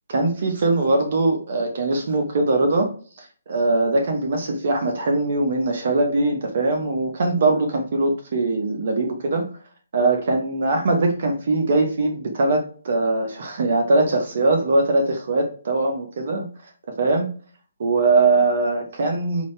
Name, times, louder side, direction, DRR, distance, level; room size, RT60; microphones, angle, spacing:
voice 1, 0.1-2.9 3.2-9.4 9.9-16.4 17.0-17.3 17.8-19.4, right 2 dB, 55° right, 3 dB, 1.0 m, -21 dB
5.0 x 2.8 x 3.2 m, 0.41 s
hypercardioid pair, 150°, 0 cm